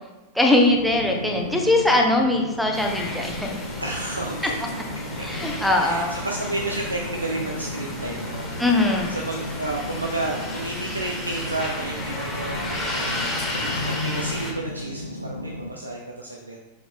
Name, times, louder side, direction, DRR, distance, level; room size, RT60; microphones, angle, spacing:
voice 1, 0.3-3.5 5.2-6.1 8.6-9.1, left 2 dB, ahead, 0 dB, 1.0 m, -21 dB
sound 1, 0.7-15.7, left 1 dB, 90° left, 0.4 m, -35 dB
sound 2, 2.7-14.5, left 1 dB, 20° left, 1.8 m, -33 dB
voice 2, 3.8-4.7 5.2-5.3 5.8-8.6 9.1-16.6, right 2 dB, 85° right, 0 dB, 0.5 m, -32 dB
5.8 x 4.9 x 3.6 m, 1.1 s
figure-of-eight pair, 90°, 0 cm